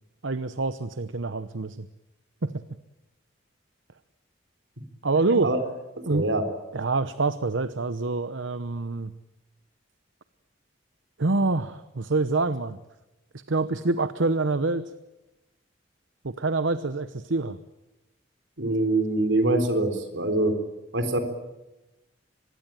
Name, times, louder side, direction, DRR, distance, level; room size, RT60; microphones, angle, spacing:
voice 1, 0.2-1.9 2.4-2.6 5.0-5.5 6.1-6.3 6.7-9.1 11.2-12.8 13.5-14.9 16.2-17.6, right 3 dB, 85° right, 13 dB, 0.9 m, -26 dB
voice 2, 6.0-6.4 18.6-20.5 20.9-21.2, right 2 dB, 70° right, 8 dB, 4.0 m, -24 dB
24.5 x 21.5 x 9.0 m, 1.0 s
head